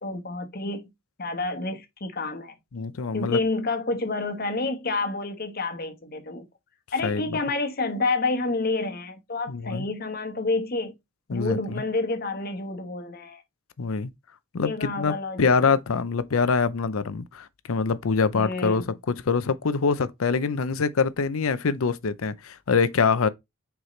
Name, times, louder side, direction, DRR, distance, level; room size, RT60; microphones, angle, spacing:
voice 1, 0.0-0.9 1.2-2.5 3.1-6.5 6.9-10.9 11.3-13.4 14.6-15.8 18.3-18.8, left 3 dB, 45° left, 1.2 m, -29 dB
voice 2, 2.7-3.4 7.0-7.2 9.5-9.9 11.3-11.8 13.8-14.1 14.5-23.3, left 5 dB, 80° left, 0.6 m, -24 dB
6.4 x 4.7 x 3.2 m
head